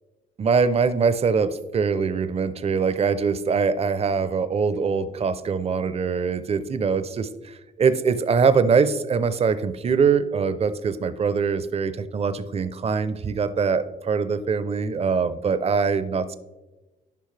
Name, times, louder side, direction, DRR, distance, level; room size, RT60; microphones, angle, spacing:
voice 1, 0.4-16.4, right 5 dB, 30° right, 13 dB, 0.5 m, -23 dB
10.5 x 5.4 x 3.2 m, 1.1 s
cardioid pair, 90°, 20 cm